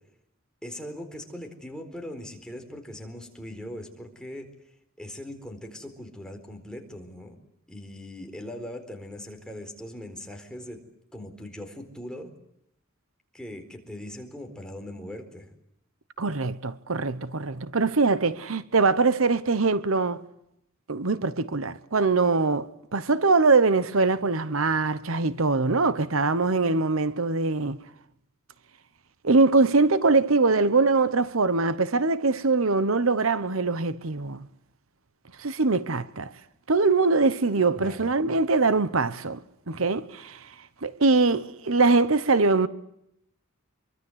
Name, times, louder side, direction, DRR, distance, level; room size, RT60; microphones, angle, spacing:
voice 1, 0.6-4.5 5.0-7.4 7.7-10.8 11.1-12.3 13.3-15.5 37.8-38.2, left 1 dB, 5° left, 4.3 m, -40 dB
voice 2, 16.2-20.2 20.9-27.8 29.2-34.4 35.4-36.3 36.7-39.4 39.7-40.4 40.8-42.7, right 3 dB, 80° right, 1.1 m, -23 dB
26.0 x 24.0 x 8.1 m
head